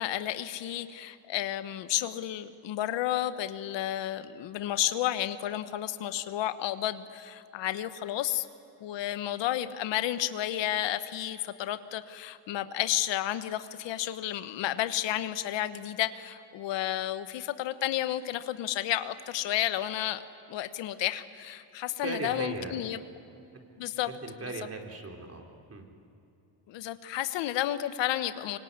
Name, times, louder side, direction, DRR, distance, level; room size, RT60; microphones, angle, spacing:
voice 1, 0.0-8.5 8.8-20.2 20.5-23.0 23.8-24.1 26.7-28.6, left 13 dB, 75° left, 11 dB, 1.3 m, -31 dB
voice 2, 22.0-22.8 23.5-23.6 24.2-25.8, right 3 dB, 35° right, 2 dB, 4.0 m, -37 dB
25.0 x 24.0 x 9.7 m, 2.8 s
cardioid pair, 105°, 43 cm